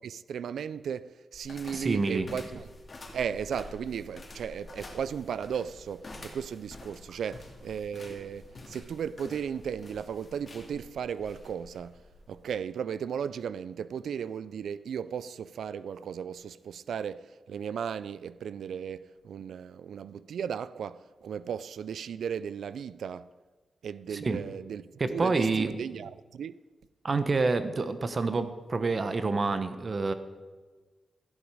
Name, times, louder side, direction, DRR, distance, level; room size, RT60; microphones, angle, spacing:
voice 1, 0.0-2.7 3.1-12.0 12.3-23.3 23.8-26.6, right 7 dB, 90° right, 0.3 m, -36 dB
sound 1, 1.3-12.6, left 2 dB, 35° left, 2.2 m, -48 dB
voice 2, 1.7-2.3 24.1-24.4 25.0-25.7 27.0-30.1, right 3 dB, 40° right, 1.0 m, -28 dB
13.5 x 11.0 x 4.8 m
wide cardioid pair, 100°, 0 cm